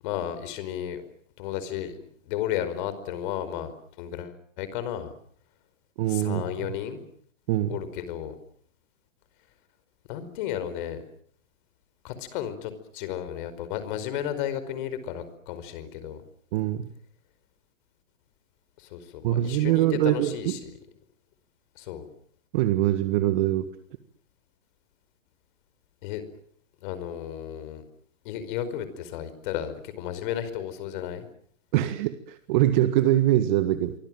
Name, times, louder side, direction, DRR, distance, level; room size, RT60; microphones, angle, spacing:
voice 1, 0.0-1.0 1.4-2.0 2.3-3.7 4.0-5.1 6.1-7.0 7.7-8.3 10.1-11.0 12.0-16.2 18.8-20.6 21.7-22.1 26.0-26.2 26.8-27.8 28.2-31.3, left 10 dB, 40° left, 13 dB, 5.0 m, -33 dB
voice 2, 6.0-6.4 7.5-7.8 16.5-16.9 19.2-20.6 22.5-23.7 31.7-33.9, right 13 dB, 40° right, 10 dB, 1.7 m, -23 dB
27.5 x 24.5 x 7.7 m, 0.62 s
hypercardioid pair, 150°, 38 cm